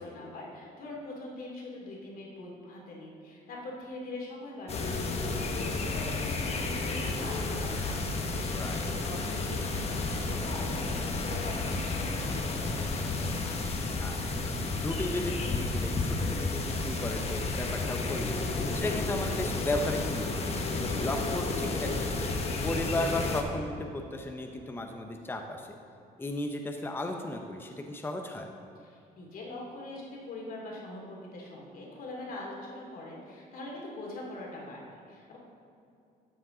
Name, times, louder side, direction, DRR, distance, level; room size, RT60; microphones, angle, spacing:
voice 1, 0.0-8.0 8.3-13.2 28.8-35.4, left 2 dB, 55° left, -2 dB, 2.5 m, -43 dB
sound 1, 4.7-23.4, left 3 dB, 40° left, 1.1 m, -32 dB
voice 2, 8.5-8.9 14.0-25.7 26.2-28.4, left 2 dB, 15° left, 3 dB, 0.7 m, -35 dB
12.5 x 7.2 x 3.8 m, 2.6 s
cardioid pair, 110°, 17 cm